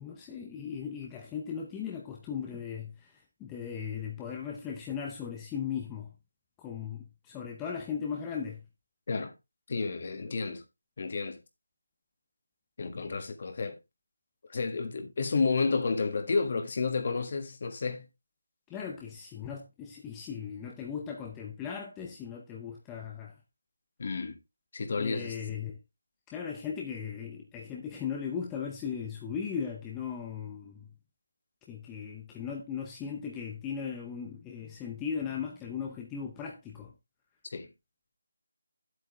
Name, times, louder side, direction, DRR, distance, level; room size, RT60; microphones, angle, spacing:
voice 1, 0.0-6.1 6.6-8.6 18.7-23.4 25.0-25.8 26.3-30.9 31.7-36.9, left 7 dB, 10° left, 0.6 m, -37 dB
voice 2, 9.7-10.6 11.0-11.4 12.8-13.8 14.5-18.1 24.0-24.4 24.7-25.4 37.5-37.7, left 4 dB, 35° left, 1.5 m, -31 dB
9.6 x 8.1 x 3.1 m
figure-of-eight pair, 175°, 0 cm